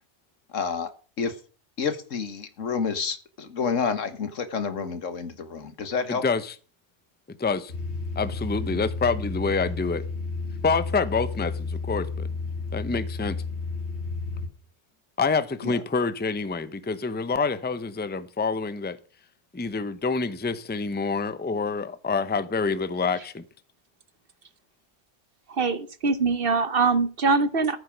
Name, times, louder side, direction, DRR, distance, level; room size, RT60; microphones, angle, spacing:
voice 1, 0.5-0.9 1.2-1.3 1.8-6.2 15.6-15.8, left 5 dB, 80° left, 1.8 m, -29 dB
voice 2, 6.1-6.5 7.4-7.7 8.2-10.0 10.6-12.3 12.7-13.4 15.2-19.0 19.5-23.4, left 4 dB, 10° left, 0.6 m, -27 dB
sound 1, 7.7-14.5, left 3 dB, 60° left, 2.3 m, -32 dB
voice 3, 25.5-27.8, right 4 dB, 50° right, 1.2 m, -23 dB
14.0 x 8.2 x 5.1 m
omnidirectional pair, 1.3 m